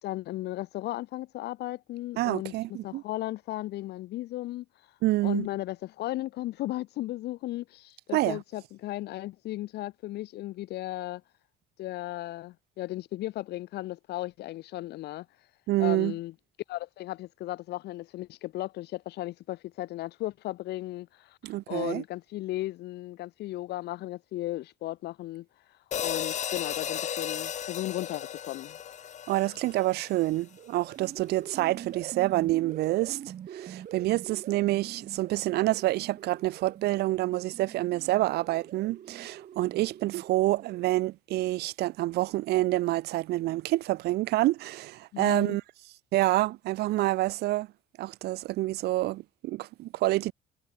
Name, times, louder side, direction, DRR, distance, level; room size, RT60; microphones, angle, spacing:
voice 1, 0.0-4.7 5.2-11.2 11.8-15.3 15.8-16.3 16.7-25.5 26.0-28.8 45.1-45.6, left 16 dB, 80° left, 3.5 m, -35 dB
voice 2, 2.2-3.0 5.0-5.5 8.1-8.4 15.7-16.1 21.4-22.0 29.3-33.2 33.5-45.6 46.1-47.7 48.0-50.3, right 17 dB, 75° right, 0.7 m, -27 dB
sound 1, 25.9-30.3, left 9 dB, 45° left, 1.0 m, -35 dB
sound 2, 30.4-40.9, right 9 dB, 50° right, 3.7 m, -45 dB
cardioid pair, 110°, 17 cm